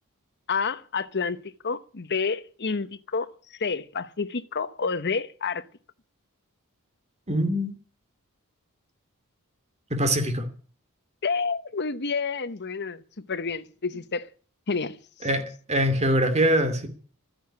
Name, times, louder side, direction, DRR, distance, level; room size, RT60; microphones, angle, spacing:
voice 1, 0.5-1.4 1.6-5.7 11.2-13.0 13.3-14.3 14.7-15.0, left 5 dB, 50° left, 1.0 m, -29 dB
voice 2, 7.3-7.7 9.9-10.5 15.2-15.4 15.7-16.9, right 1 dB, 30° right, 2.7 m, -23 dB
13.5 x 10.0 x 9.8 m
head